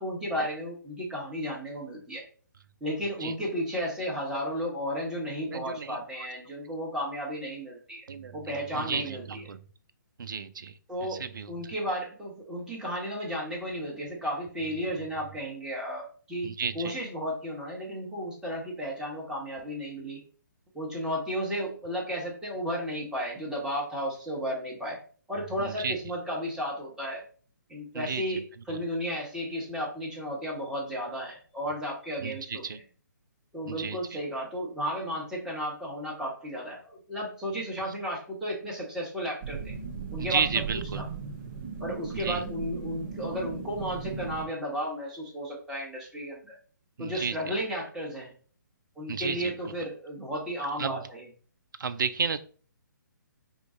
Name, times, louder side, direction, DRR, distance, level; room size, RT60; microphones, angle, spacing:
voice 1, 0.0-2.2 2.8-8.1 8.3-9.4 10.9-11.2 11.5-20.2 20.7-25.0 25.3-27.2 27.7-32.8 33.5-39.7 40.1-40.5 40.7-41.0 41.8-46.6 47.0-48.3 49.0-51.3, equal, 5° right, -3 dB, 1.3 m, -33 dB
voice 2, 5.5-6.0 8.1-8.4 8.7-9.6 10.2-10.7 11.1-11.5 16.4-16.9 25.6-25.9 27.9-28.2 32.2-32.8 33.7-34.0 40.2-41.0 42.1-42.4 47.0-47.4 49.1-49.5 50.8-51.0 51.8-52.4, right 6 dB, 75° right, 10 dB, 0.4 m, -32 dB
sound 1, 39.4-44.4, right 5 dB, 35° right, 0.9 m, -37 dB
5.0 x 2.3 x 3.7 m, 0.42 s
figure-of-eight pair, 140°, 11 cm